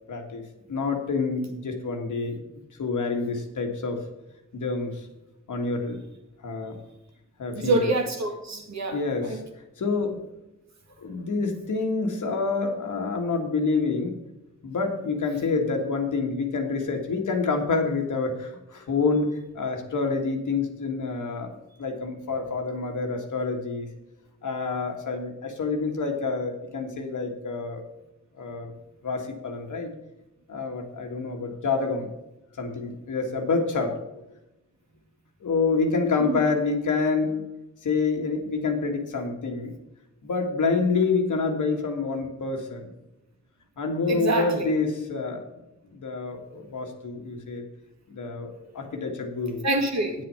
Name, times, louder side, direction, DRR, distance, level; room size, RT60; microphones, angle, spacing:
voice 1, 0.1-2.4 2.8-4.0 4.5-5.1 5.5-6.0 6.4-6.8 7.4-7.9 8.9-9.4 9.8-10.2 11.0-14.2 14.6-21.5 21.8-23.9 24.4-27.8 28.4-28.7 29.0-29.9 30.5-32.1 32.6-34.0 35.4-37.4 37.8-39.7 40.2-42.8 43.8-45.5 45.8-47.7 48.1-49.7, left 4 dB, 85° left, 3 dB, 1.8 m, -27 dB
voice 2, 7.6-9.4 44.1-44.7 49.6-50.1, right 2 dB, 65° right, 3 dB, 2.1 m, -26 dB
8.8 x 7.7 x 5.6 m, 0.93 s
cardioid pair, 70°, 30 cm